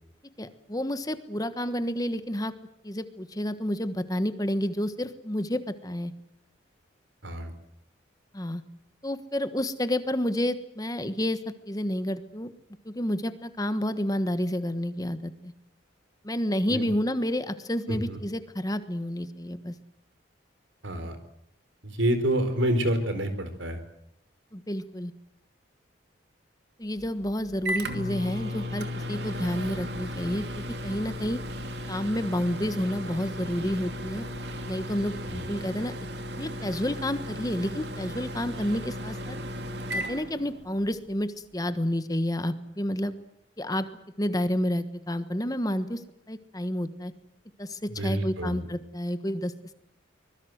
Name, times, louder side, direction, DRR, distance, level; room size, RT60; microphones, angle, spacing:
voice 1, 0.4-2.5 2.8-6.1 8.3-8.6 9.0-12.5 12.8-15.5 16.2-19.7 24.5-25.1 26.8-31.4 31.9-34.3 34.7-35.9 36.4-39.4 39.9-43.2 43.6-43.9 44.2-46.0 46.3-47.1 47.6-49.5, equal, 20° left, 11 dB, 1.3 m, -30 dB
voice 2, 17.9-18.2 20.8-21.2 21.8-23.8 35.3-35.4 48.0-48.7, right 1 dB, 75° right, 9 dB, 4.4 m, -28 dB
Microwave oven, 27.0-41.0, left 1 dB, 60° right, 2.7 m, -35 dB
24.5 x 21.5 x 8.0 m, 0.80 s
head